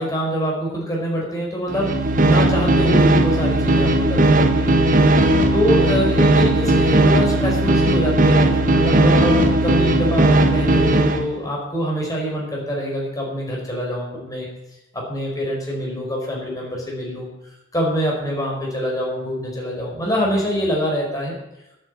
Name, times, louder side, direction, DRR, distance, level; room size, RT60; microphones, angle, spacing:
voice 1, 0.0-1.9 2.2-4.8 5.5-14.5 14.9-17.3 17.7-21.3, equal, 20° left, -2 dB, 4.4 m, -24 dB
sound 1, 1.7-11.2, right 1 dB, 45° right, 1.2 m, -16 dB
10.5 x 9.1 x 8.1 m, 0.89 s
head